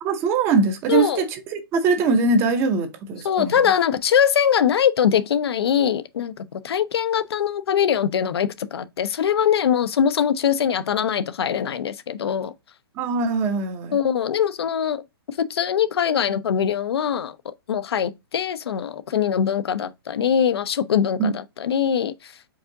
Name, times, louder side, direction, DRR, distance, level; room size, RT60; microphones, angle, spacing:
voice 1, 0.0-3.6 13.0-14.0 21.2-21.3, right 4 dB, 20° right, 0.5 m, -22 dB
voice 2, 0.9-1.2 3.2-12.5 13.9-17.4 17.7-22.3, left 8 dB, 80° left, 0.5 m, -22 dB
4.8 x 3.6 x 2.6 m
hypercardioid pair, 160°, 13 cm